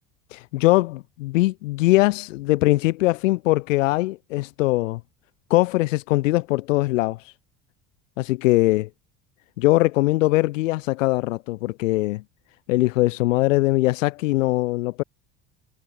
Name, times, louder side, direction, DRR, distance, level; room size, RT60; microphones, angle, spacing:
voice 1, 0.3-5.0 5.5-7.3 8.2-8.9 9.6-12.2 12.7-15.0, left 19 dB, 90° left, 1.0 m, -21 dB
supercardioid pair, 80°, 37 cm